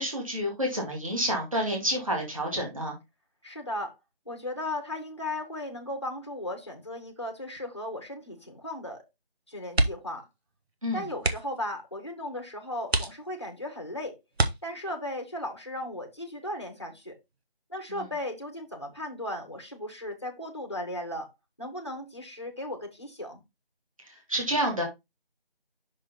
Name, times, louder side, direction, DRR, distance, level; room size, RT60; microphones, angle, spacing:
voice 1, 0.0-3.0 10.8-11.1 17.9-18.1 24.3-24.8, equal, 35° right, 2.1 m, -29 dB
voice 2, 3.4-3.9 4.3-9.0 9.5-10.3 10.9-14.2 14.6-17.2 17.7-21.3 21.6-23.4, left 1 dB, 25° left, 1.0 m, -36 dB
sound 1, 9.7-10.2 10.5-10.7 11.2-11.7 12.3-12.4 12.9-13.6 14.3-15.1 16.7-17.0 17.3-17.4, right 2 dB, 80° right, 1.2 m, -28 dB
6.0 x 4.6 x 4.0 m
figure-of-eight pair, 175°, 31 cm